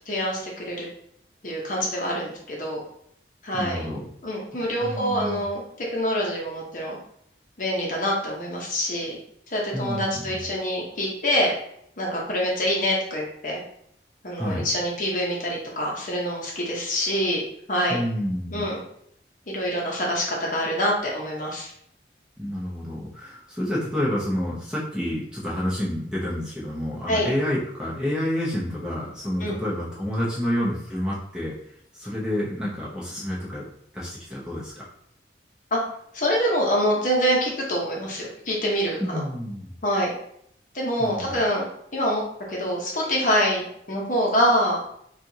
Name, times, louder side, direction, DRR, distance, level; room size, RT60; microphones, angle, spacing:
voice 1, 0.1-0.9 1.4-2.8 3.4-3.9 4.2-7.0 7.6-9.1 9.5-11.5 12.0-13.6 14.2-17.4 17.7-18.0 18.5-18.8 19.5-21.7 27.1-27.3 29.4-29.6 35.7-35.8 36.1-39.2 39.8-40.1 40.7-42.2 42.5-44.8, equal, 45° left, -2 dB, 0.9 m, -25 dB
voice 2, 3.5-4.0 4.8-5.4 9.7-10.4 14.4-14.7 17.9-18.6 22.4-31.5 31.9-33.6 33.9-34.9 39.0-39.7 41.0-41.4, equal, 5° right, -7 dB, 0.8 m, -29 dB
4.4 x 2.4 x 2.7 m, 0.70 s
head